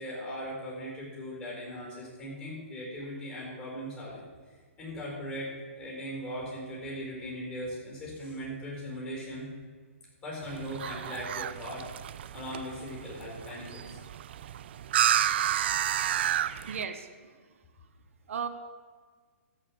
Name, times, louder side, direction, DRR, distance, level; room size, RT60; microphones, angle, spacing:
voice 1, 0.0-4.3 4.8-9.5 10.2-11.9 12.3-14.0, equal, 15° left, -4 dB, 4.4 m, -39 dB
sound 1, 10.4-16.8, right 11 dB, 50° right, 0.4 m, -31 dB
voice 2, 16.7-17.4 18.3-18.5, right 6 dB, 70° right, 8 dB, 1.0 m, -35 dB
14.0 x 5.2 x 8.5 m, 1.5 s
hypercardioid pair, 160°, 8 cm